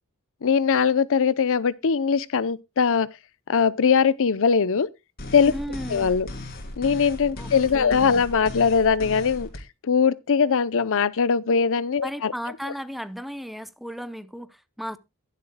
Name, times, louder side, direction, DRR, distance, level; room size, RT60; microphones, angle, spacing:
voice 1, 0.4-3.1 3.5-4.9 5.3-5.5 5.9-6.3 6.8-9.5 9.9-12.3, left 6 dB, 65° left, 0.6 m, -21 dB
sound 1, 5.2-9.6, left 2 dB, 45° left, 3.2 m, -37 dB
voice 2, 5.5-6.1 7.4-7.5 7.8-8.2 12.0-15.0, equal, ahead, 0.6 m, -35 dB
22.0 x 7.5 x 2.2 m
head